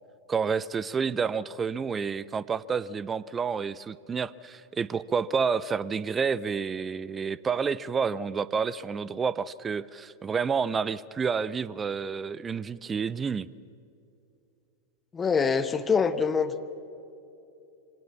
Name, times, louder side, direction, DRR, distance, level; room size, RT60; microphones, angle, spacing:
voice 1, 0.3-13.5, right 6 dB, 20° right, 20 dB, 0.5 m, -29 dB
voice 2, 15.1-16.6, left 5 dB, 20° left, 12 dB, 1.0 m, -25 dB
24.5 x 18.0 x 7.2 m, 2.7 s
figure-of-eight pair, 90°, 0 cm